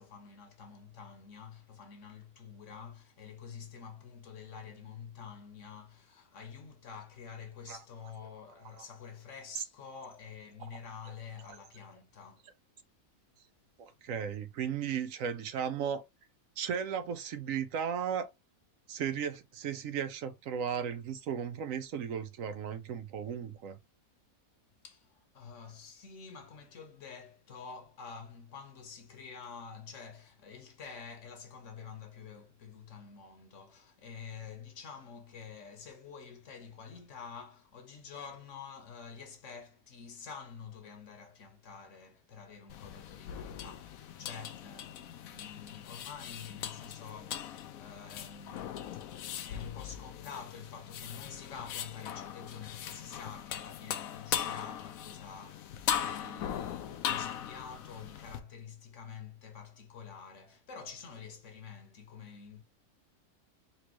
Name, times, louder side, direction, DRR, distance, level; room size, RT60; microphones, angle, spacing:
voice 1, 0.0-12.5 13.9-14.0 24.8-62.6, left 6 dB, 60° left, 1.2 m, -48 dB
voice 2, 13.8-16.0 16.6-18.3 18.9-23.8, right 8 dB, 70° right, 1.0 m, -35 dB
sound 1, 42.7-58.4, left 9 dB, 75° left, 1.0 m, -39 dB
4.3 x 3.0 x 2.9 m
omnidirectional pair, 1.5 m